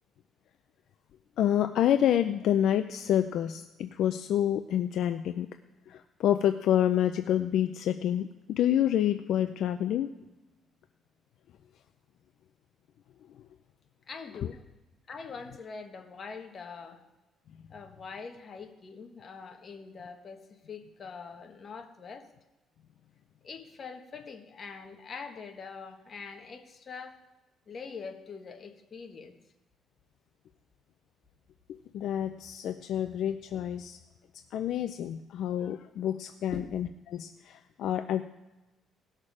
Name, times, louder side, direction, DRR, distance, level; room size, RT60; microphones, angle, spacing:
voice 1, 1.4-5.5 5.9-8.3 8.6-10.1 31.9-34.0 34.5-38.2, left 10 dB, 65° left, 8 dB, 0.5 m, -28 dB
voice 2, 14.1-14.6 15.1-17.0 17.7-22.3 23.4-27.2 27.7-29.4 36.5-36.7, left 5 dB, 35° left, 4 dB, 1.5 m, -43 dB
18.0 x 6.6 x 4.9 m, 1.0 s
cardioid pair, 125°, 0 cm